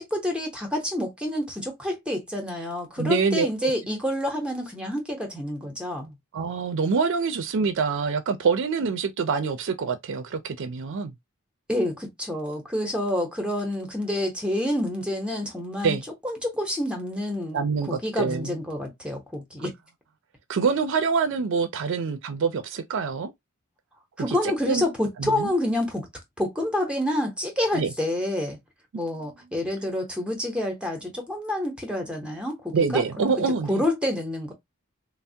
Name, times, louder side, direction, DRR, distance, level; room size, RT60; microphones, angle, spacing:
voice 1, 0.0-6.1 11.7-16.0 16.2-19.7 24.2-26.1 26.4-28.6 28.9-34.5, left 1 dB, 5° right, 0.7 m, -28 dB
voice 2, 3.0-3.7 6.3-11.1 15.8-16.0 17.5-18.5 19.6-19.7 20.5-23.3 24.3-24.8 25.2-25.5 27.7-27.9 32.7-33.8, right 5 dB, 60° right, 0.4 m, -25 dB
3.3 x 2.0 x 2.6 m
head